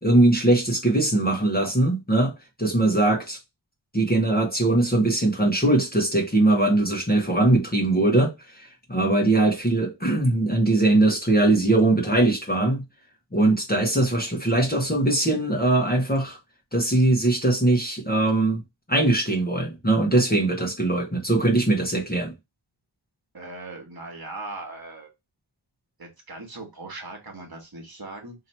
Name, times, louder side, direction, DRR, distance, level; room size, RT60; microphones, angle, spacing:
voice 1, 0.0-2.3 2.6-3.4 3.9-12.8 13.3-16.4 16.7-18.6 18.9-22.3, right 2 dB, 20° left, 1.1 m, -21 dB
voice 2, 23.3-25.1 26.0-28.3, right 2 dB, 45° right, 1.4 m, -39 dB
2.9 x 2.9 x 4.3 m
wide cardioid pair, 70°, 49 cm